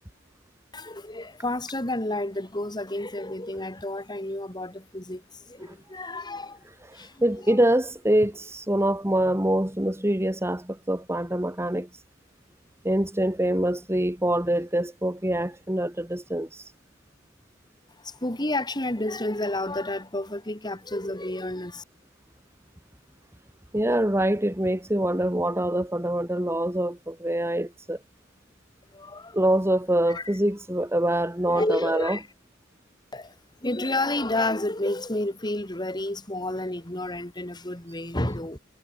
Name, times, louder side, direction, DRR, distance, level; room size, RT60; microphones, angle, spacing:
voice 1, 0.7-6.6 6.9-7.2 7.5-7.6 18.0-21.8 28.9-29.4 30.1-30.2 31.5-32.3 33.1-33.3 33.6-38.6, left 1 dB, 20° left, 3.4 m, -30 dB
voice 2, 6.9-11.9 12.8-16.7 23.7-28.0 29.3-32.2, right 1 dB, 15° right, 2.1 m, -25 dB
head